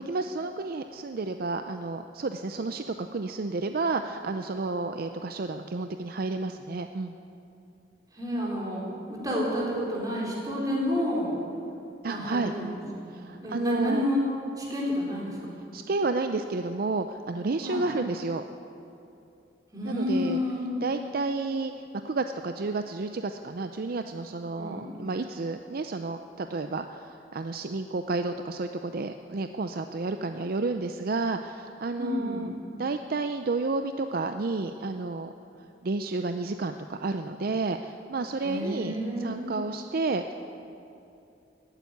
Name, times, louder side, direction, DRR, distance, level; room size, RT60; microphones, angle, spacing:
voice 1, 0.1-7.1 12.0-12.5 13.1-14.1 15.7-18.4 19.8-20.4 20.8-21.7 22.0-32.5 32.8-35.3 35.8-40.3, right 3 dB, 55° right, 8 dB, 0.5 m, -31 dB
voice 2, 8.1-8.8 9.1-11.4 12.1-14.2 14.6-15.7 17.6-17.9 19.7-20.8 24.6-24.9 32.0-32.5 38.4-39.5, left 1 dB, 20° right, -4 dB, 4.1 m, -30 dB
15.0 x 9.1 x 9.6 m, 2.7 s
head